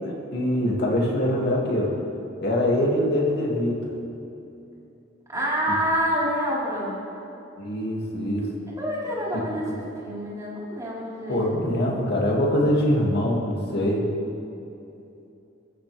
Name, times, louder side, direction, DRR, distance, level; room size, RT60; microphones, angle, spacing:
voice 1, 0.0-1.9 2.4-3.7 7.6-8.5 9.3-9.8 11.3-14.0, left 1 dB, 60° left, -2 dB, 2.5 m, -24 dB
voice 2, 5.3-6.9 8.8-11.7, equal, 20° right, -8 dB, 4.3 m, -27 dB
20.0 x 14.5 x 3.5 m, 2.8 s
head